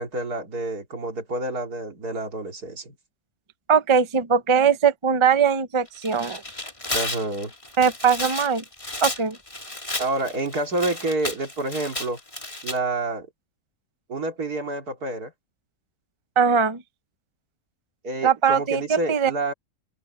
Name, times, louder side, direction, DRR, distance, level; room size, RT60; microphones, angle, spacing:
voice 1, 0.0-3.0 6.9-7.5 10.0-12.2 12.6-13.3 14.1-15.3 18.0-19.5, right 2 dB, 65° right, 3.5 m, -28 dB
voice 2, 3.7-6.4 7.8-8.6 9.0-9.4 16.4-16.8 18.2-19.3, right 7 dB, 30° right, 0.5 m, -20 dB
Tearing, 5.9-12.8, left 2 dB, 20° left, 2.4 m, -33 dB
open air
omnidirectional pair, 1.7 m